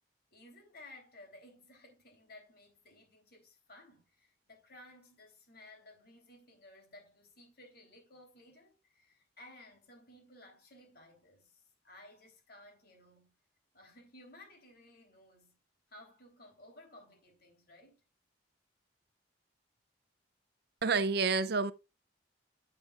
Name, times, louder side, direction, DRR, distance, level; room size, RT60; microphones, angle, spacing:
voice 1, 0.3-13.4 13.7-15.6 15.9-18.0, left 1 dB, 55° left, 3.6 m, -57 dB
voice 2, 20.8-21.7, right 4 dB, 55° right, 0.6 m, -28 dB
10.0 x 8.6 x 2.5 m
head